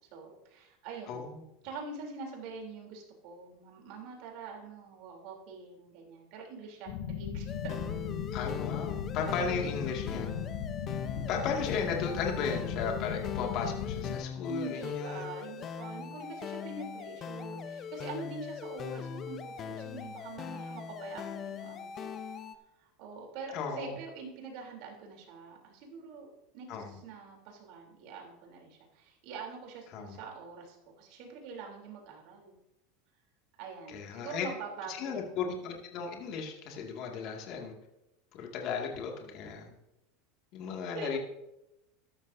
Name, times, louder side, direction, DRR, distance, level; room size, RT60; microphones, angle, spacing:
voice 1, 0.1-1.2 1.6-7.8 14.5-22.1 22.8-32.6 33.6-35.4 40.9-41.2, right 4 dB, 60° right, 0 dB, 3.5 m, -44 dB
voice 2, 1.1-1.4 8.3-10.3 11.3-15.2 23.5-24.0 26.7-27.0 29.9-30.2 33.9-34.5 34.9-37.7 38.3-39.7 40.5-41.2, left 5 dB, 55° left, 1 dB, 2.3 m, -35 dB
sound 1, 6.9-14.2, left 7 dB, 80° left, 1.7 m, -37 dB
sound 2, 7.5-22.5, left 7 dB, 35° left, 0.8 m, -40 dB
13.5 x 12.5 x 2.8 m, 0.93 s
supercardioid pair, 115°, 0 cm